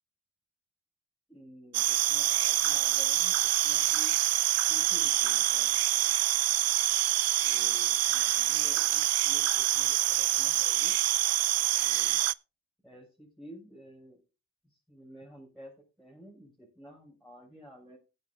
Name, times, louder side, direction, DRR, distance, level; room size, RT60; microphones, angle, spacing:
voice 1, 1.3-4.1 4.7-6.2 7.3-10.9 11.8-12.2 12.8-14.2 14.9-15.7 16.0-18.0, equal, ahead, -4 dB, 6.0 m, -51 dB
sound 1, 1.7-12.3, right 14 dB, 55° right, 0.5 m, -26 dB
18.0 x 9.5 x 2.3 m, 0.30 s
cardioid pair, 90°, 30 cm